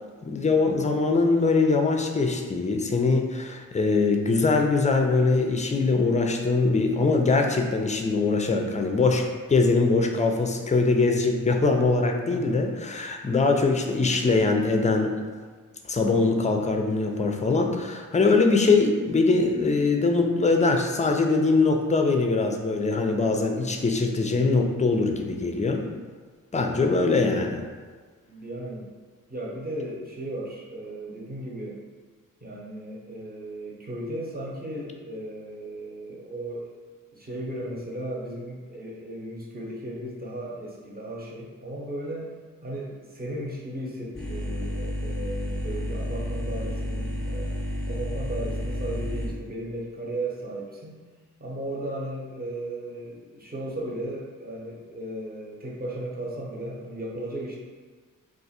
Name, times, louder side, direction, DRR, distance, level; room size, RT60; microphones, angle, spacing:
voice 1, 0.2-15.2 15.9-25.9 26.5-27.6, left 3 dB, 20° left, 3 dB, 0.4 m, -22 dB
voice 2, 28.3-28.8 29.3-31.8 32.4-36.8 37.1-42.3 42.6-47.6 47.8-51.0 51.4-57.6, right 1 dB, 30° right, -3 dB, 0.9 m, -35 dB
sound 1, 44.1-49.3, equal, ahead, 0.8 m, -31 dB
2.5 x 2.4 x 4.1 m, 1.5 s
cardioid pair, 60°, 33 cm